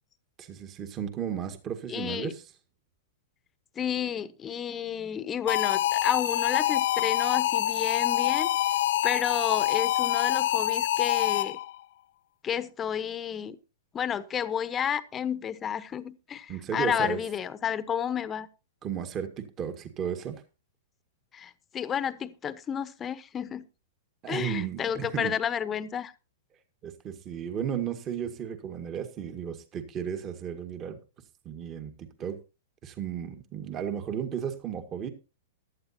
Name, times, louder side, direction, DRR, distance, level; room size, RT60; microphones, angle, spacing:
voice 1, 0.4-2.4 16.5-17.2 18.8-20.4 24.2-25.4 26.8-31.0 31.5-32.4 32.8-35.1, right 8 dB, 30° right, 1.7 m, -34 dB
voice 2, 1.9-2.3 3.8-8.5 9.0-11.6 12.4-13.6 13.9-18.5 21.3-23.7 24.3-26.1, left 8 dB, 25° left, 1.0 m, -31 dB
sound 1, 5.5-11.8, left 13 dB, 65° left, 0.6 m, -26 dB
16.5 x 11.5 x 2.8 m
hypercardioid pair, 120°, 0 cm